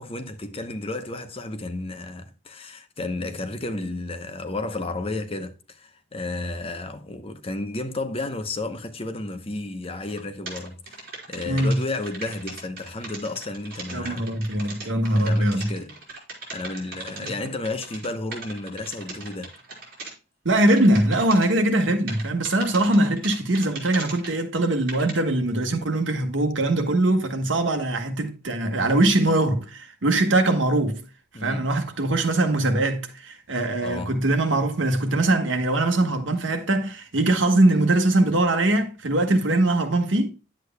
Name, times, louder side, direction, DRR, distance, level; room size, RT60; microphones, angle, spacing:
voice 1, 0.0-10.9 11.3-14.4 14.8-15.9 16.5-19.5 31.3-31.7 33.8-34.2, left 2 dB, 30° left, 0.9 m, -32 dB
sound 1, 10.1-10.2 10.5-20.1 20.7-21.5 22.1-24.3 24.9-25.1, right 3 dB, 50° right, 4.0 m, -38 dB
voice 2, 11.5-11.8 13.9-15.7 17.2-17.3 20.4-31.0 31.4-40.3, right 2 dB, 70° right, 1.6 m, -22 dB
10.0 x 8.2 x 2.2 m
head